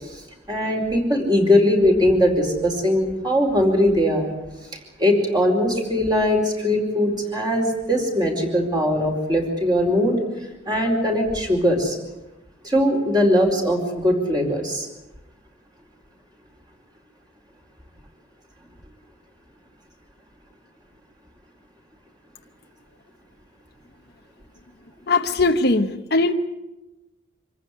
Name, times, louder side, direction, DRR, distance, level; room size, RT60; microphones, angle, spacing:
voice 1, 0.0-4.3 5.0-10.2 10.7-12.0 12.6-14.9, left 1 dB, 20° right, 1 dB, 4.5 m, -20 dB
voice 2, 25.1-26.3, left 3 dB, 55° left, 4 dB, 1.0 m, -20 dB
25.5 x 15.0 x 9.9 m, 1.0 s
head